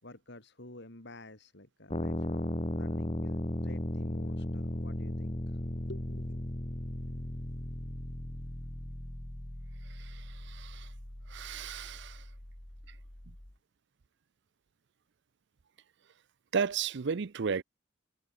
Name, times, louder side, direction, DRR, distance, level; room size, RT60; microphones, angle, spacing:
voice 1, 0.0-5.4 5.7-6.4, left 1 dB, 60° left, 4.8 m, -50 dB
sound 1, 1.9-13.5, left 1 dB, 30° left, 1.8 m, -37 dB
voice 2, 10.0-10.9 11.3-12.2 16.5-17.6, right 6 dB, 65° right, 0.5 m, -34 dB
head